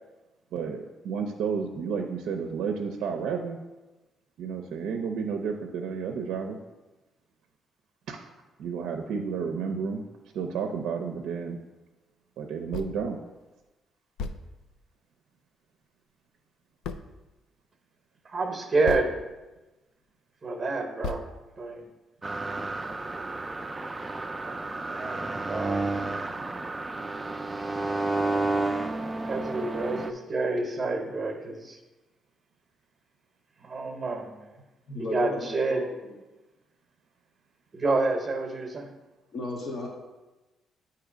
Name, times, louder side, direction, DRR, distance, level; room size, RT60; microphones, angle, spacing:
voice 1, 0.5-3.6 4.4-6.6 8.1-8.3 8.6-10.0 10.3-11.6 12.4-13.2, right 6 dB, 85° right, 4 dB, 0.5 m, -31 dB
sound 1, 12.7-13.1 13.6-13.7 14.2-14.9 16.8-17.3 18.8-19.5 20.0-20.1 21.0-21.8, left 4 dB, 85° left, 0.3 m, -37 dB
voice 2, 18.2-19.2 20.4-21.2 21.6-21.8 24.4-25.9 29.2-31.8 33.6-34.5 35.0-35.8 37.7-38.9, right 3 dB, 35° right, 4 dB, 0.8 m, -29 dB
sound 2, 22.2-30.1, right 2 dB, 20° right, 0.4 m, -31 dB
voice 3, 34.9-36.2 39.3-39.9, left 2 dB, 55° left, -1 dB, 0.8 m, -35 dB
7.8 x 2.8 x 4.9 m, 1.1 s
cardioid pair, 90°, 0 cm